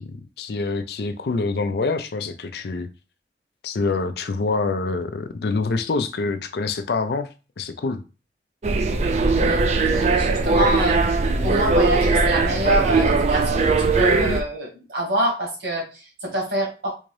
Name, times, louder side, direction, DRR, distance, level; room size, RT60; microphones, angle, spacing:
voice 1, 0.0-2.9 3.6-7.3 7.6-8.0, left 3 dB, 65° left, 0.4 m, -26 dB
sound 1, 8.6-14.4, right 3 dB, 40° right, 0.4 m, -20 dB
voice 2, 9.9-11.0 11.4-16.9, right 1 dB, 75° right, 1.6 m, -25 dB
3.5 x 2.6 x 3.2 m
head